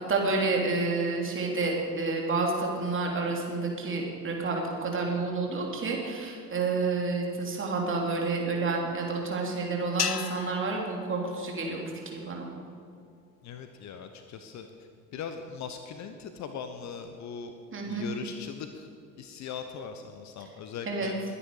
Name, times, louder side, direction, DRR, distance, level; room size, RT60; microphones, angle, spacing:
voice 1, 0.1-12.5 17.7-18.1 20.9-21.1, right 3 dB, 25° right, -1 dB, 3.3 m, -29 dB
sound 1, 10.0-12.4, left 8 dB, 80° left, 0.8 m, -36 dB
voice 2, 13.4-17.5 17.9-18.9 19.2-21.4, left 6 dB, 35° left, 7 dB, 1.0 m, -40 dB
21.5 x 10.0 x 4.9 m, 2.4 s
figure-of-eight pair, 65°, 47 cm